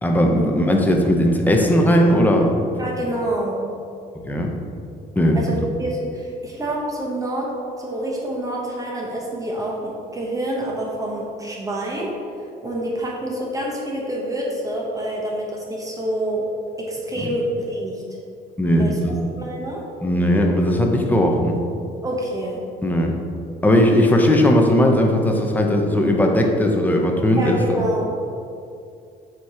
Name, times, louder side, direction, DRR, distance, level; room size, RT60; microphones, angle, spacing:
voice 1, 0.0-2.6 4.3-4.5 5.2-5.4 17.2-17.3 18.6-19.1 20.0-21.5 22.8-23.1 23.6-27.6, equal, 10° left, 1 dB, 0.8 m, -17 dB
voice 2, 2.8-3.6 5.3-12.1 12.6-16.5 16.8-18.0 18.7-19.8 22.0-22.6 24.0-24.1 27.4-28.0, right 1 dB, 20° right, -3 dB, 1.1 m, -27 dB
7.0 x 3.1 x 4.9 m, 2.5 s
cardioid pair, 110°, 17 cm